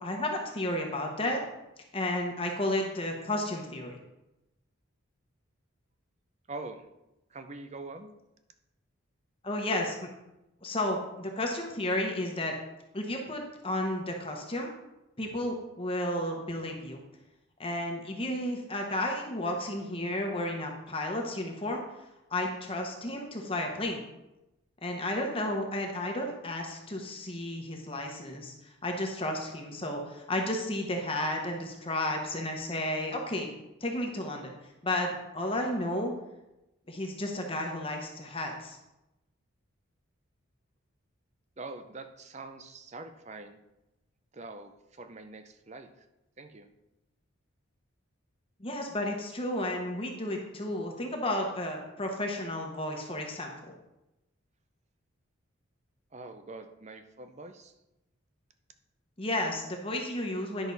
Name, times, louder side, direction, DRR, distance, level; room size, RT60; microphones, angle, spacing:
voice 1, 0.0-1.4 1.9-4.0 9.4-10.1 10.6-12.5 12.9-14.7 15.2-17.0 17.6-21.8 22.3-24.0 24.8-33.5 33.8-34.6 34.8-36.1 36.9-38.8 48.6-53.7 59.2-60.7, left 1 dB, 25° left, 2 dB, 1.0 m, -32 dB
voice 2, 6.5-6.9 7.3-8.1 41.6-43.6 44.3-46.1 46.4-46.7 56.1-57.7, right 3 dB, 30° right, 8 dB, 0.6 m, -44 dB
10.5 x 6.1 x 4.1 m, 0.94 s
head